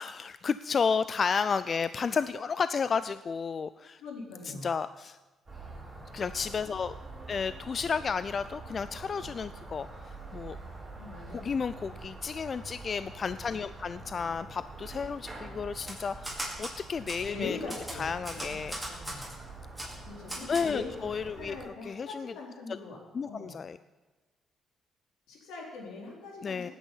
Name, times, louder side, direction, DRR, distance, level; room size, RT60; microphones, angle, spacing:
voice 1, 0.0-4.0 4.5-5.2 6.1-6.9 7.3-10.6 11.3-17.6 18.0-18.8 20.5-22.3 23.1-23.8 26.4-26.7, left 5 dB, 45° left, 14 dB, 0.4 m, -32 dB
voice 2, 4.0-4.7 11.0-11.5 17.3-18.6 18.9-19.3 20.0-21.1 21.3-23.0 23.3-23.6 25.3-26.7, left 3 dB, 85° left, -2 dB, 4.2 m, -41 dB
sound 1, 5.5-21.6, right 2 dB, 20° right, 5.6 m, -45 dB
Typewriter, 15.7-16.8 17.1-17.2 17.7-19.3 19.8-19.9 20.3-20.7, right 1 dB, ahead, 5.3 m, -38 dB
19.0 x 9.2 x 5.6 m, 1.2 s
cardioid pair, 90°, 0 cm